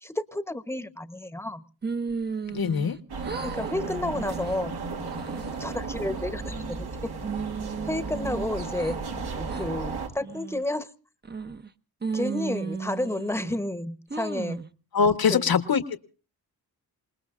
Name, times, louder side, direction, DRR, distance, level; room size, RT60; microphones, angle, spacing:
voice 1, 0.0-1.6 3.4-4.7 5.6-6.9 7.8-9.0 9.3-10.9 12.1-14.6 15.3-15.5, left 1 dB, 5° left, 1.1 m, -31 dB
sound 1, 1.8-3.0 3.2-3.8 4.2-4.5 5.0-5.6 6.1-6.8 7.2-9.0 9.5-9.7 10.2-10.7 11.2-11.7 12.0-13.6 14.1-14.7, right 5 dB, 25° right, 0.9 m, -34 dB
voice 2, 2.5-3.0 14.9-16.0, left 6 dB, 65° left, 1.4 m, -23 dB
sound 2, 3.1-10.1, right 4 dB, 85° right, 2.3 m, -34 dB
28.0 x 20.0 x 2.5 m
wide cardioid pair, 90°, 38 cm